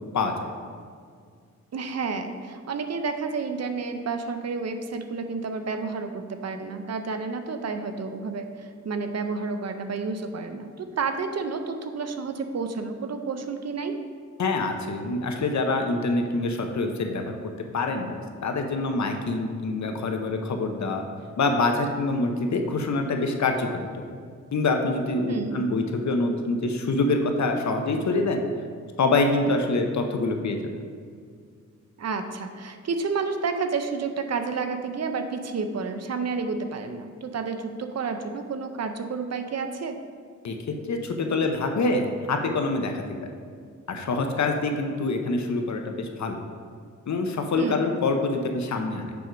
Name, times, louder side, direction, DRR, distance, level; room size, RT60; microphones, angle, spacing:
voice 1, 1.7-14.0 25.3-25.6 32.0-40.0 47.6-47.8, right 4 dB, 60° right, 7 dB, 0.6 m, -30 dB
voice 2, 14.4-17.4 17.7-21.0 21.4-24.0 24.5-28.4 29.0-30.6 40.4-43.0 43.9-46.4 47.1-49.2, left 3 dB, 70° left, 4 dB, 0.8 m, -25 dB
7.0 x 4.6 x 5.1 m, 2.1 s
wide cardioid pair, 110°, 30 cm